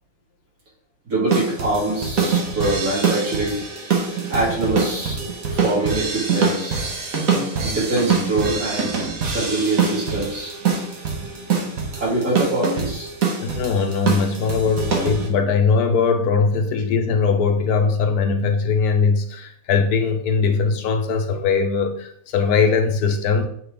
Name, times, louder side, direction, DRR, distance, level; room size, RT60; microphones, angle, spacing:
voice 1, 1.1-3.6 4.3-5.2 5.5-6.8 7.6-10.7 11.2-13.1, right 2 dB, 90° right, -7 dB, 3.0 m, -24 dB
sound 1, 1.3-15.3, right 5 dB, 70° right, 1.6 m, -24 dB
voice 2, 13.4-23.4, left 5 dB, 90° left, 6 dB, 1.3 m, -20 dB
7.1 x 3.9 x 3.4 m, 0.68 s
omnidirectional pair, 1.6 m